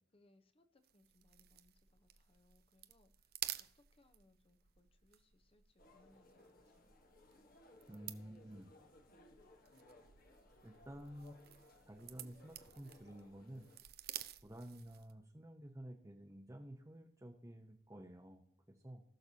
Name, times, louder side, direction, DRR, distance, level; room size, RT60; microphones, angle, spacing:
voice 1, 0.1-6.9, left 2 dB, 30° left, 8 dB, 0.9 m, -72 dB
sound 1, 0.8-15.2, right 12 dB, 55° right, 0.7 m, -53 dB
sound 2, 5.8-13.8, left 1 dB, 50° left, 1.3 m, -64 dB
voice 2, 7.9-8.7 10.6-11.4 11.9-13.7 14.4-19.0, right 1 dB, 15° right, 1 dB, 0.8 m, -52 dB
19.5 x 6.7 x 2.8 m, 0.76 s
head